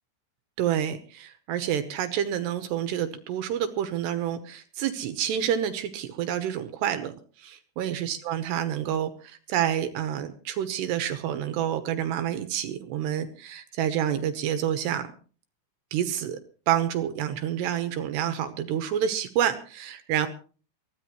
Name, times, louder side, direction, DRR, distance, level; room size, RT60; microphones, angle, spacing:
voice 1, 0.6-15.1 15.9-16.4 16.7-20.3, right 10 dB, 75° right, 9 dB, 2.9 m, -28 dB
22.5 x 16.0 x 3.1 m, 0.39 s
omnidirectional pair, 5.3 m